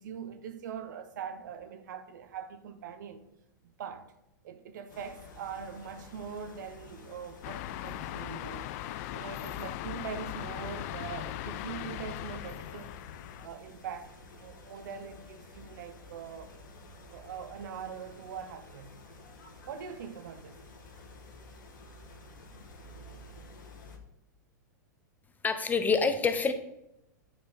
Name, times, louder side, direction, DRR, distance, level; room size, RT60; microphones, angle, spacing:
voice 1, 0.0-3.2 3.6-4.1 4.4-8.7 9.1-12.9 13.4-16.5 17.1-19.0 19.7-20.6, right 7 dB, 65° right, 1.0 m, -42 dB
sound 1, 4.9-24.0, left 2 dB, 70° left, 1.7 m, -51 dB
sound 2, 7.4-13.5, left 15 dB, 50° left, 0.4 m, -39 dB
voice 2, 25.4-26.5, left 5 dB, 15° left, 0.9 m, -26 dB
8.8 x 5.4 x 4.3 m
hypercardioid pair, 105°, 11 cm